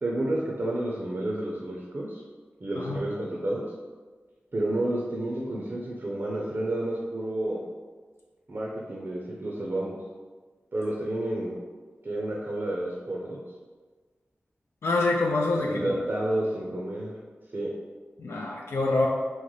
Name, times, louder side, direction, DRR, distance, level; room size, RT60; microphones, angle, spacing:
voice 1, 0.0-2.2 2.6-3.6 4.5-7.6 8.5-10.0 10.7-11.6 12.0-13.4 15.6-17.1 17.5-17.7, right 1 dB, 50° right, -3 dB, 0.5 m, -30 dB
voice 2, 14.8-15.9 18.2-19.1, left 2 dB, 75° left, -1 dB, 0.4 m, -26 dB
3.1 x 2.1 x 3.8 m, 1.4 s
cardioid pair, 45°, 4 cm